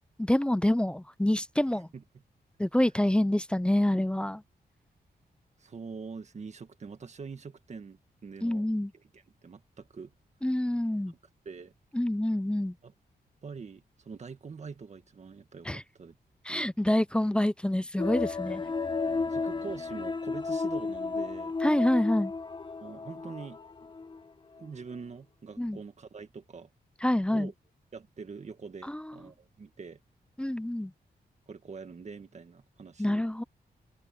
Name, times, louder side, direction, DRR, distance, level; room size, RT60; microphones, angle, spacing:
voice 1, 0.2-1.9 2.6-4.4 8.4-8.9 10.4-11.1 11.9-12.7 15.7-15.8 16.5-18.6 21.6-22.3 25.6-25.8 27.0-27.5 28.9-29.1 30.4-30.9 33.0-33.4, left 1 dB, 5° left, 0.4 m, -27 dB
voice 2, 5.6-8.6 8.9-10.1 11.5-11.7 12.8-12.9 13.4-16.2 16.5-16.7 19.2-21.6 22.8-23.9 24.6-26.7 27.3-27.5 27.9-30.0 31.5-33.3, right 5 dB, 45° right, 1.8 m, -44 dB
sound 1, 18.0-24.2 24.6-24.7, left 4 dB, 30° left, 0.8 m, -33 dB
wide cardioid pair, 135°, 17 cm